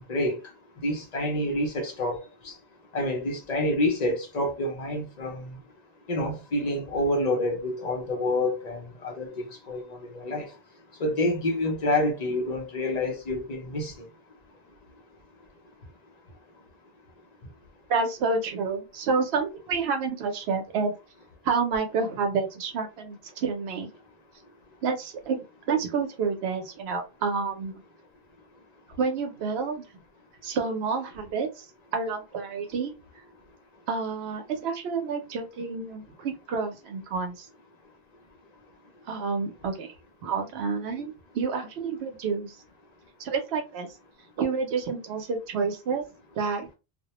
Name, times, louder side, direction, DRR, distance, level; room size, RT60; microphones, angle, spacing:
voice 1, 0.8-2.2 2.4-2.5 2.9-5.6 6.1-10.5 11.0-13.9, left 1 dB, 50° left, 0.6 m, -28 dB
voice 2, 17.9-20.9 21.4-23.9 24.8-27.8 29.0-29.8 30.4-31.7 31.9-32.9 33.9-37.5 39.1-39.9 40.2-42.6 43.2-43.9 44.4-46.0 46.4-46.7, right 5 dB, 80° right, 0.8 m, -29 dB
2.2 x 2.1 x 2.8 m
omnidirectional pair, 1.0 m